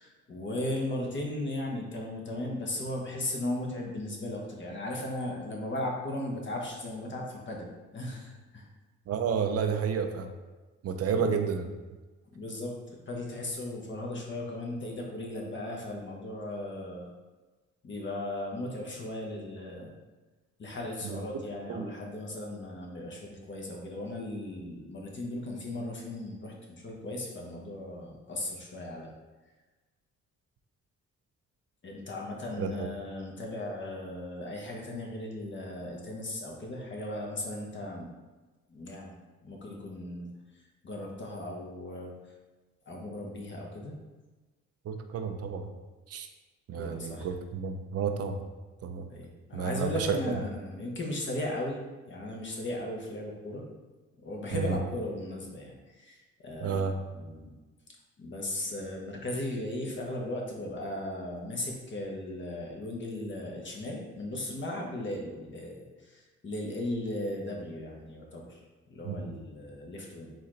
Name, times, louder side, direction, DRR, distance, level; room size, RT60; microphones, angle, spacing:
voice 1, 0.0-8.7 11.1-11.3 12.3-17.1 17.8-19.9 20.6-29.1 31.8-38.1 38.7-39.1 39.4-40.3 40.8-42.2 42.9-44.0 46.7-47.3 49.1-51.8 52.1-53.7 54.2-57.5 58.2-68.6 68.9-70.3, left 1 dB, 40° left, -1 dB, 1.1 m, -37 dB
voice 2, 9.1-10.3 10.8-11.7 21.0-21.2 21.7-21.9 32.6-32.9 44.8-45.7 46.1-46.3 46.7-48.4 48.8-49.0 49.5-50.4 54.5-54.8 56.6-57.0 69.0-69.3, right 6 dB, 55° right, 6 dB, 0.6 m, -31 dB
4.1 x 3.1 x 3.8 m, 1.2 s
cardioid pair, 90°, 30 cm